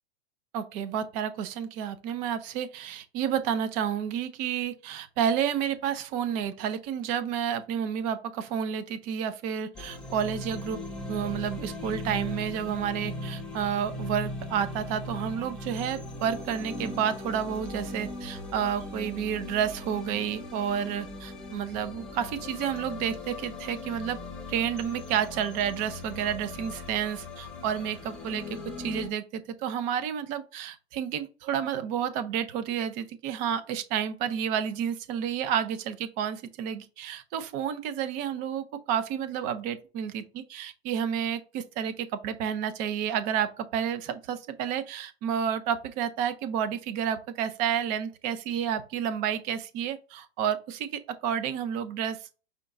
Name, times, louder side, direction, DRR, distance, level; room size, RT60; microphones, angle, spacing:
voice 1, 0.5-10.8 11.1-24.2 24.5-52.3, right 8 dB, 25° right, 0.4 m, -30 dB
sound 1, 9.7-29.1, left 2 dB, 5° left, 0.8 m, -39 dB
5.1 x 2.2 x 3.7 m
hypercardioid pair, 125°, 33 cm